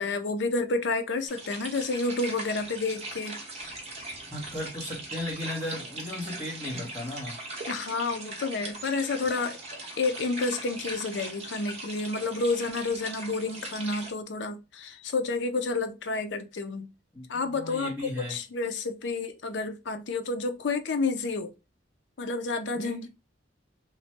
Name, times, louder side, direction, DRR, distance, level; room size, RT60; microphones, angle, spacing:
voice 1, 0.0-3.4 3.6-3.8 7.7-9.6 10.0-16.9 17.3-21.5 22.2-23.1, left 3 dB, 70° left, 0.5 m, -30 dB
sound 1, 1.3-14.1, right 2 dB, 35° right, 0.8 m, -40 dB
voice 2, 4.3-7.4 17.1-18.4 22.7-23.0, left 1 dB, 15° left, 0.8 m, -36 dB
3.0 x 2.1 x 2.8 m
head